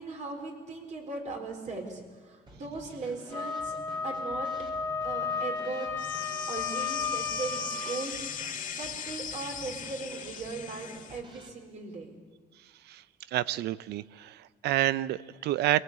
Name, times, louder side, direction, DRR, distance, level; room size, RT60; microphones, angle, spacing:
voice 1, 0.0-3.8 4.0-4.5 5.0-5.9 6.5-12.1, right 3 dB, 45° right, 2 dB, 4.5 m, -38 dB
Drum kit / Snare drum, 2.5-11.5, right 1 dB, 30° right, 3.2 m, -51 dB
Wind instrument woodwind instrument, 3.3-8.1, left 5 dB, 15° left, 1.4 m, -33 dB
sound 1, 6.0-11.2, left 8 dB, 50° left, 1.5 m, -39 dB
voice 2, 13.3-15.8, right 14 dB, 75° right, 17 dB, 0.6 m, -29 dB
23.0 x 17.0 x 8.3 m, 1.5 s
cardioid pair, 120°, 17 cm